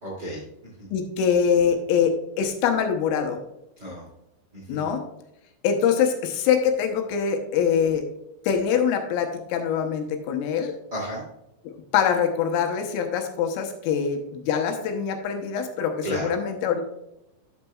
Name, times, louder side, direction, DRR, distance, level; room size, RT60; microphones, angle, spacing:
voice 1, 0.0-0.9 3.8-4.0 4.5-4.8 10.9-11.2 16.0-16.3, right 1 dB, 35° right, -5 dB, 1.7 m, -33 dB
voice 2, 0.9-3.4 4.7-5.0 5.6-8.0 8.5-10.7 11.7-16.8, left 7 dB, 80° left, 4 dB, 3.5 m, -24 dB
12.0 x 6.7 x 2.3 m, 0.85 s
omnidirectional pair, 6.0 m